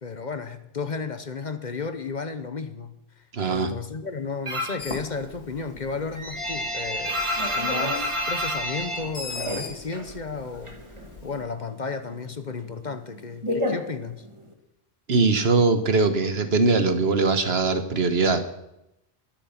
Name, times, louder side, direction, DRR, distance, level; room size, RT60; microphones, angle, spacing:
voice 1, 0.0-2.9 3.5-7.2 7.6-10.7 11.2-14.2, left 4 dB, 45° left, 10 dB, 1.1 m, -33 dB
voice 2, 3.3-3.7 15.1-18.6, right 4 dB, 70° right, 8 dB, 1.5 m, -21 dB
sound 1, 4.5-4.9 5.2-10.1 10.4-11.4 11.7-14.5, left 1 dB, 30° right, 2.1 m, -29 dB
Bird, 4.8-11.4, left 3 dB, 90° left, 2.6 m, -41 dB
22.5 x 8.8 x 5.9 m, 0.85 s
omnidirectional pair, 1.1 m